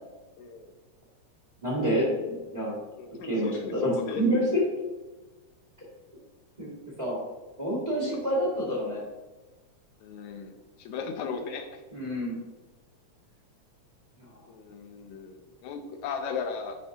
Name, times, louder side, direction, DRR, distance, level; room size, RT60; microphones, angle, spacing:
voice 1, 0.4-0.7 3.0-4.2 8.0-8.2 10.0-10.5 10.8-11.8 14.5-16.8, left 5 dB, 80° left, 6 dB, 1.9 m, -36 dB
voice 2, 1.6-2.8 3.2-4.6 6.6-6.7 7.0-7.2 7.6-9.0 11.9-12.4 14.2-14.3, equal, 15° right, -5 dB, 2.0 m, -28 dB
9.8 x 4.5 x 2.7 m, 1.2 s
omnidirectional pair, 3.3 m